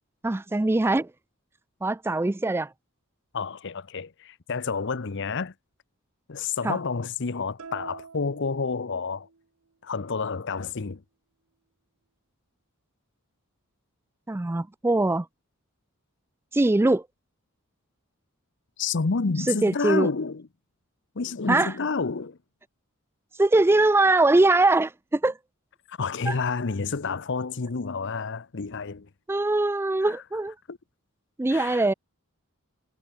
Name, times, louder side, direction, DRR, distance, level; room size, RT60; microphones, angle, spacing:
voice 1, 0.2-1.1 1.8-2.7 6.6-6.8 14.3-15.3 16.5-17.0 19.5-20.1 21.5-21.7 23.4-25.4 26.3-26.4 29.3-30.5 31.4-31.9, right 2 dB, 10° right, 0.3 m, -22 dB
voice 2, 3.3-5.5 6.3-9.3 9.8-11.0 18.8-20.4 21.2-22.4 25.9-29.1 30.7-30.8 31.5-31.8, left 4 dB, 55° left, 0.8 m, -29 dB
sound 1, 7.6-9.4, right 5 dB, 80° right, 1.0 m, -45 dB
head